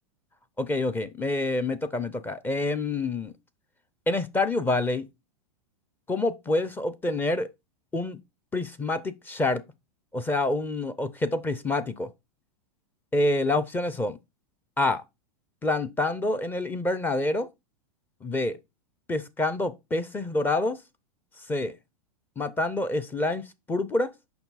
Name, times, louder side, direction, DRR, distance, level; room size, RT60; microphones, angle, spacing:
voice 1, 0.6-3.3 4.1-5.1 6.1-7.5 7.9-8.2 8.5-9.6 10.1-12.1 13.1-14.2 14.8-15.0 15.6-17.5 18.2-18.6 19.1-20.8 21.4-21.8 22.4-24.1, left 2 dB, 10° left, 0.5 m, -27 dB
6.9 x 5.6 x 4.0 m
hypercardioid pair, 135°, 19 cm